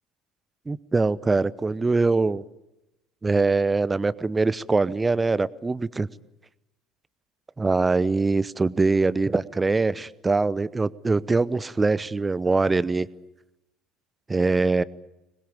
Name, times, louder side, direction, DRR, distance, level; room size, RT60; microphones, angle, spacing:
voice 1, 0.7-2.4 3.2-6.1 7.6-13.1 14.3-14.8, right 3 dB, 20° right, 19 dB, 0.8 m, -23 dB
25.5 x 21.0 x 8.7 m, 0.94 s
figure-of-eight pair, 60°, 0 cm